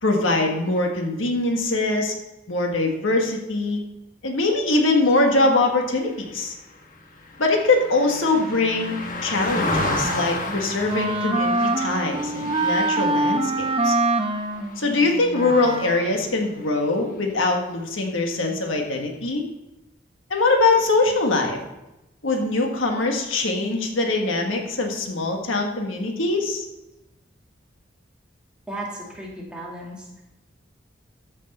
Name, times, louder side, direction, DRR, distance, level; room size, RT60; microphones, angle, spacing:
voice 1, 0.0-2.1 2.5-3.8 4.2-6.5 7.4-13.9 14.8-19.4 20.3-21.6 22.2-26.6, left 2 dB, 90° left, 2 dB, 1.6 m, -22 dB
Car passing by, 6.1-15.6 16.0-16.2, left 2 dB, 40° left, 1.3 m, -32 dB
Wind instrument woodwind instrument, 9.6-16.2, right 2 dB, 25° right, 0.8 m, -25 dB
voice 2, 28.7-30.1, right 1 dB, 5° right, -4 dB, 2.1 m, -35 dB
13.5 x 6.5 x 4.2 m, 0.95 s
head